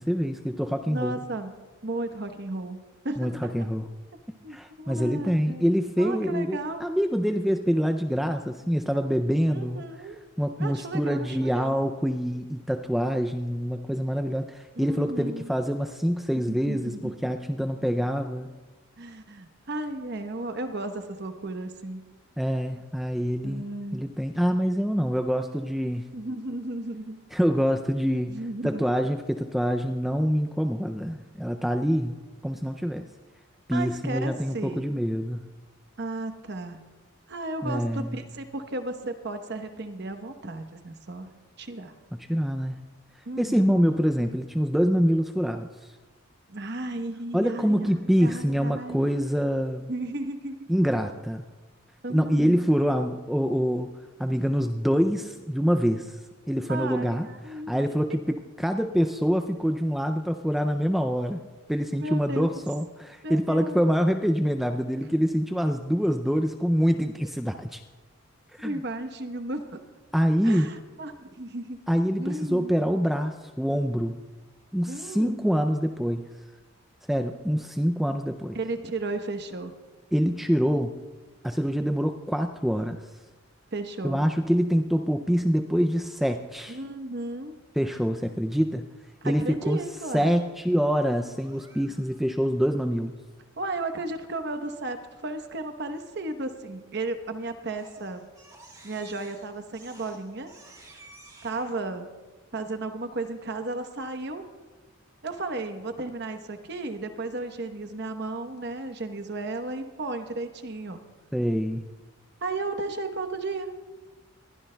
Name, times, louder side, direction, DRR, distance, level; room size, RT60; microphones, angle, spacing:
voice 1, 0.0-1.2 3.2-3.9 4.5-9.8 10.4-18.5 22.4-23.6 23.9-26.1 27.3-28.3 28.6-32.1 32.4-33.1 33.7-35.4 37.6-38.2 42.1-42.8 43.4-45.9 47.3-49.9 50.7-51.4 52.1-53.9 54.2-56.2 56.5-61.4 61.7-67.8 68.5-68.8 70.1-70.7 71.9-74.2 74.7-76.3 77.1-78.6 80.1-80.9 81.4-83.0 84.0-86.8 87.8-88.8 89.2-89.8 90.1-93.2 111.3-111.9, equal, ahead, 6 dB, 0.3 m, -25 dB
voice 2, 0.9-3.4 4.4-5.7 6.0-6.8 9.5-10.2 10.6-11.8 14.8-15.5 16.5-17.3 19.0-22.0 23.4-24.1 26.1-27.2 28.3-28.9 33.7-34.8 36.0-36.8 37.3-41.3 41.6-41.9 43.3-43.8 46.5-49.0 49.9-50.5 52.0-52.6 56.7-57.9 61.9-62.6 63.2-63.8 68.6-69.8 70.4-71.8 72.2-72.7 74.9-75.5 78.5-79.7 83.7-84.2 86.7-87.6 89.2-90.4 93.6-98.3 98.8-100.5 101.4-102.1 102.5-104.4 105.2-111.0 112.4-113.7, right 2 dB, 50° right, 7 dB, 1.0 m, -34 dB
Crying sobbing, 91.3-92.3 96.9-97.3 97.6-101.7, right 2 dB, 15° right, 2.4 m, -52 dB
22.0 x 15.5 x 2.3 m, 1.2 s
head